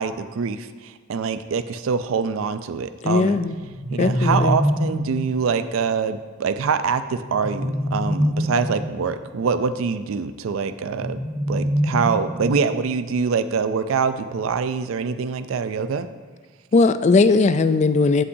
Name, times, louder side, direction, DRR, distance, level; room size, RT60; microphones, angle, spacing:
voice 1, 0.0-3.4 3.9-11.2 11.5-16.1, right 5 dB, 75° right, 11 dB, 0.4 m, -24 dB
voice 2, 3.0-3.6 4.0-4.6 16.7-18.2, left 3 dB, 35° left, 12 dB, 0.3 m, -18 dB
sound 1, 3.5-5.3 7.1-9.0 10.8-12.8, equal, ahead, 1.0 m, -25 dB
16.0 x 5.6 x 2.7 m, 1.5 s
head